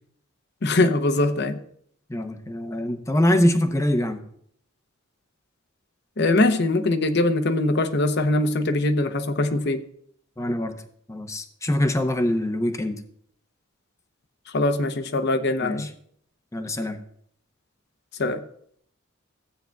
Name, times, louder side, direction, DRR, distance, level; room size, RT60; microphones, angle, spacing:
voice 1, 0.6-1.6 6.2-9.8 14.5-15.9 18.2-18.4, left 2 dB, 55° left, 9 dB, 0.8 m, -22 dB
voice 2, 2.1-4.2 10.4-10.7 11.1-13.0 15.6-15.9 16.5-17.0, left 1 dB, 15° left, 7 dB, 0.7 m, -24 dB
15.5 x 8.8 x 2.3 m, 0.66 s
head